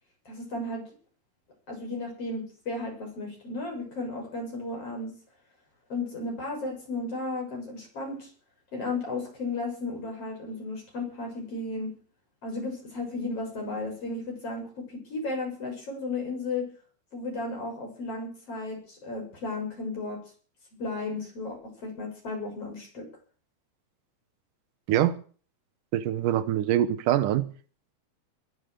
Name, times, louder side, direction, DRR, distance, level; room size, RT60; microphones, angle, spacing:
voice 1, 0.3-0.8 1.7-5.1 5.9-8.3 8.7-12.0 12.4-16.7 17.1-20.2 20.8-23.1, left 2 dB, 45° left, 7.8 m, -34 dB
voice 2, 25.9-27.5, right 12 dB, 80° right, 2.5 m, -24 dB
21.5 x 9.2 x 6.6 m
omnidirectional pair, 3.7 m